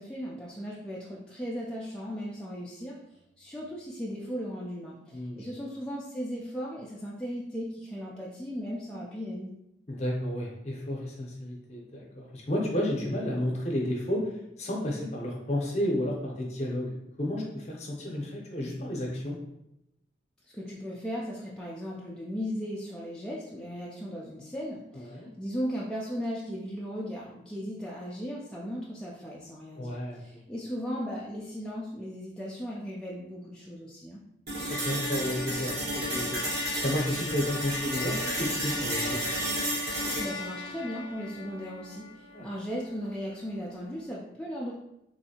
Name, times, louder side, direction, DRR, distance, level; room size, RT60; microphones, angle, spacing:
voice 1, 0.0-3.0 3.4-9.5 20.5-34.2 40.1-44.7, equal, 5° left, -6 dB, 0.3 m, -37 dB
voice 2, 5.1-5.5 9.9-19.4 24.9-25.3 29.8-30.2 34.7-36.4 36.8-39.2 42.3-42.5, left 1 dB, 40° left, -1 dB, 0.7 m, -32 dB
sound 1, 34.5-42.5, equal, 65° right, 1.3 m, -32 dB
3.2 x 2.7 x 2.8 m, 0.84 s
head